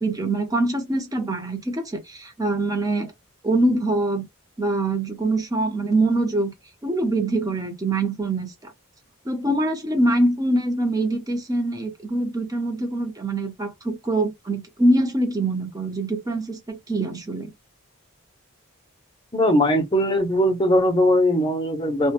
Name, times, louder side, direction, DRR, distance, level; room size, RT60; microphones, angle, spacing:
voice 1, 0.0-3.1 3.4-4.3 4.6-6.5 6.8-8.7 9.2-17.5, right 2 dB, 15° right, 0.6 m, -24 dB
voice 2, 19.3-22.1, equal, 20° left, 0.6 m, -20 dB
2.4 x 2.2 x 2.8 m
head